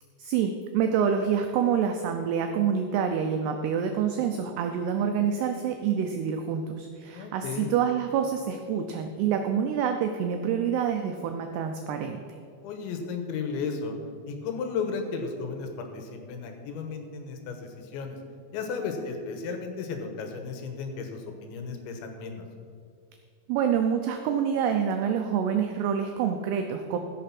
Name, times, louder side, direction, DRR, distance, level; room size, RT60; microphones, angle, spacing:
voice 1, 0.2-12.2 23.5-27.0, right 7 dB, 90° right, 5 dB, 2.3 m, -27 dB
voice 2, 7.1-7.7 12.6-14.0 14.3-18.2 18.5-22.4, left 5 dB, 75° left, 5 dB, 3.2 m, -34 dB
15.0 x 6.6 x 5.8 m, 2.3 s
omnidirectional pair, 5.5 m